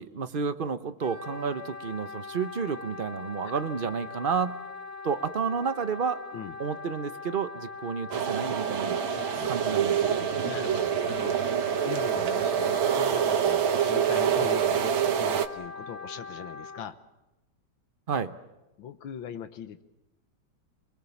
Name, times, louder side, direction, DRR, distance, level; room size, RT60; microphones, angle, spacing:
voice 1, 0.0-4.6 5.0-6.2 6.6-9.0 9.4-10.3 18.1-18.3, right 6 dB, 50° right, 10 dB, 0.6 m, -31 dB
Wind instrument woodwind instrument, 1.0-16.9, left 4 dB, 30° left, 0.7 m, -41 dB
sound 1, 8.1-15.5, right 8 dB, 80° right, 1.9 m, -26 dB
voice 2, 9.1-9.5 10.4-11.4 11.8-17.0 18.8-19.8, left 8 dB, 75° left, 11 dB, 1.9 m, -40 dB
27.5 x 21.0 x 7.2 m, 0.97 s
omnidirectional pair, 2.2 m